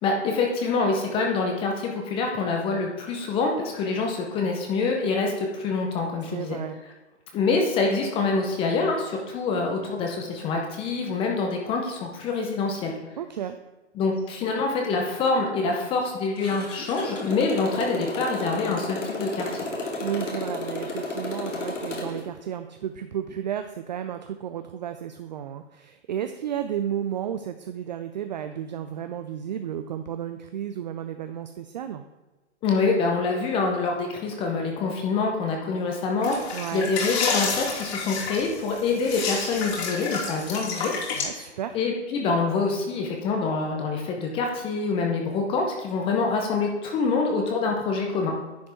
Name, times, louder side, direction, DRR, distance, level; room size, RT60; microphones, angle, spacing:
voice 1, 0.0-6.6 7.3-12.9 14.0-19.5 32.6-41.4 41.7-48.3, left 4 dB, 15° left, 1 dB, 0.7 m, -26 dB
voice 2, 6.3-6.8 13.2-13.6 20.0-32.0 36.5-36.9 41.2-41.8, right 9 dB, 40° right, 8 dB, 0.4 m, -32 dB
Motorcycle, 16.4-22.2, left 2 dB, 90° left, 2.3 m, -32 dB
sound 1, 36.2-41.2, left 4 dB, 60° left, 3.1 m, -29 dB
10.0 x 5.2 x 4.4 m, 1.1 s
hypercardioid pair, 140°, 36 cm